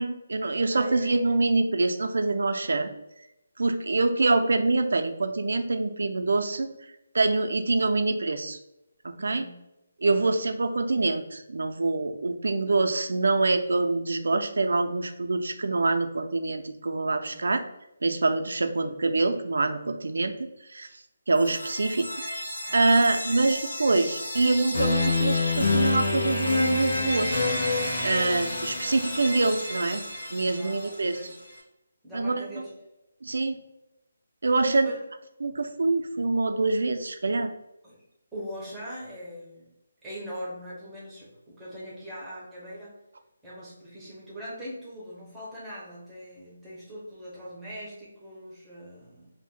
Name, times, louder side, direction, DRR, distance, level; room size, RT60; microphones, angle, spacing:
voice 1, 0.0-2.9 3.6-6.7 7.1-8.6 9.0-9.4 10.0-17.6 18.0-20.9 21.3-22.1 22.7-27.4 28.0-30.0 30.3-31.2 32.1-32.6 33.2-33.6 34.4-34.9 35.4-37.5, right 3 dB, 75° right, 7 dB, 0.4 m, -25 dB
voice 2, 0.7-1.1 9.2-9.6 10.1-10.4 17.2-17.5 22.7-23.1 30.5-31.4 32.0-32.7 34.6-35.0 37.8-38.0 38.3-39.7 40.0-43.0 43.4-49.3, equal, 5° right, -8 dB, 0.6 m, -41 dB
sound 1, 21.3-31.3, left 2 dB, 55° left, 1.0 m, -28 dB
2.5 x 2.1 x 3.6 m, 0.88 s
hypercardioid pair, 175°, 0 cm